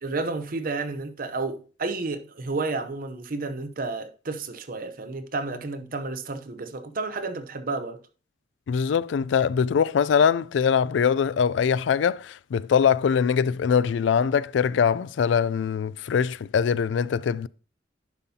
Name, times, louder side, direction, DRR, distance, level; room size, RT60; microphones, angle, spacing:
voice 1, 0.0-8.0, right 3 dB, 50° right, 0.7 m, -31 dB
voice 2, 8.7-17.5, left 7 dB, 85° left, 0.3 m, -22 dB
10.5 x 5.5 x 2.8 m
head